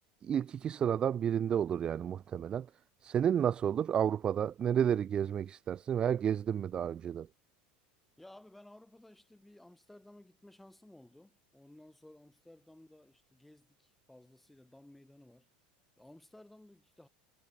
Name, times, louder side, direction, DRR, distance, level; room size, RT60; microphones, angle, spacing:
voice 1, 0.2-2.7 3.0-7.3, right 9 dB, 20° right, 0.4 m, -31 dB
voice 2, 8.2-15.5 16.0-17.1, left 1 dB, 5° left, 7.1 m, -57 dB
supercardioid pair, 160°, 4 cm